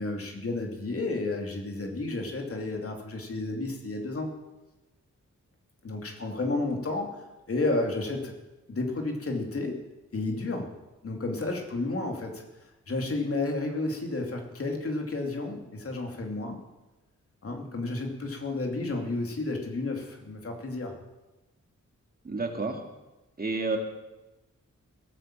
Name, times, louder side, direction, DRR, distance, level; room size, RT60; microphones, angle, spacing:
voice 1, 0.0-4.3 5.8-7.1 7.5-8.3 8.7-9.8 10.1-10.7 11.0-12.4 12.9-16.6 17.4-20.9, left 2 dB, 50° left, 2 dB, 2.7 m, -31 dB
voice 2, 22.2-22.8 23.4-23.8, right 3 dB, 30° right, 4 dB, 1.8 m, -29 dB
18.5 x 9.0 x 7.6 m, 1.0 s
wide cardioid pair, 170°, 29 cm